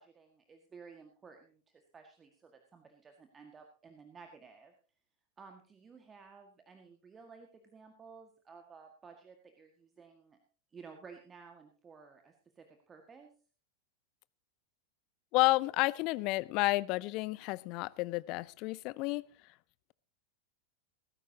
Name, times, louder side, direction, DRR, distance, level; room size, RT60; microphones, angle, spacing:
voice 1, 0.0-4.7 5.4-10.4 10.7-13.3, right 5 dB, 20° right, 4 dB, 1.8 m, -55 dB
voice 2, 15.3-19.2, left 21 dB, 40° left, 21 dB, 0.5 m, -31 dB
18.0 x 15.0 x 2.9 m, 0.39 s
figure-of-eight pair, 90°, 0 cm